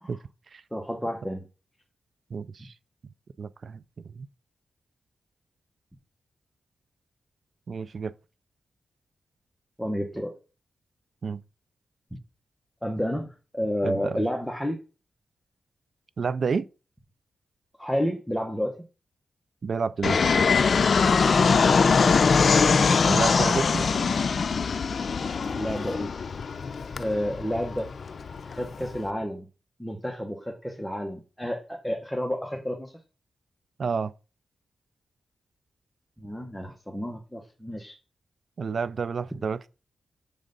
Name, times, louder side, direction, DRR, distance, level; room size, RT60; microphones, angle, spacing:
voice 1, 0.7-1.4 9.8-10.3 12.8-14.8 17.8-18.9 25.5-26.1 27.0-27.9 28.4-29.5 29.8-33.0 36.2-37.9, equal, ahead, 1.0 m, -31 dB
voice 2, 2.3-2.7 3.4-4.3 7.7-8.1 11.2-11.4 13.8-14.2 16.2-16.7 19.6-20.2 23.1-23.8 33.8-34.1 38.6-39.7, right 5 dB, 55° right, 0.3 m, -30 dB
Fixed-wing aircraft airplane, 20.0-29.1, left 5 dB, 55° left, 0.5 m, -22 dB
6.5 x 3.7 x 5.2 m
wide cardioid pair, 115°, 0 cm